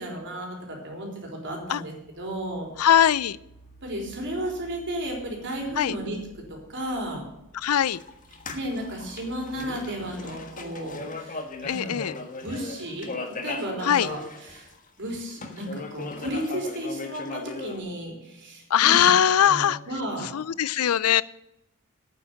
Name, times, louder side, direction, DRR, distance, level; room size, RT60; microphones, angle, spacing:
voice 1, 0.0-2.7 3.8-6.2 6.5-7.2 8.5-12.1 12.4-14.7 15.0-20.3, right 1 dB, 55° right, 0 dB, 3.9 m, -34 dB
sound 1, 1.6-11.6, right 2 dB, 55° left, 2.5 m, -54 dB
voice 2, 2.8-3.4 5.8-5.9 7.6-8.0 11.7-12.1 13.8-14.1 18.7-19.8 20.3-21.2, left 9 dB, 80° left, 21 dB, 0.5 m, -20 dB
sound 2, 7.9-14.8 15.2-17.8, left 3 dB, 40° left, 1.5 m, -38 dB
9.1 x 8.1 x 9.4 m, 0.88 s
head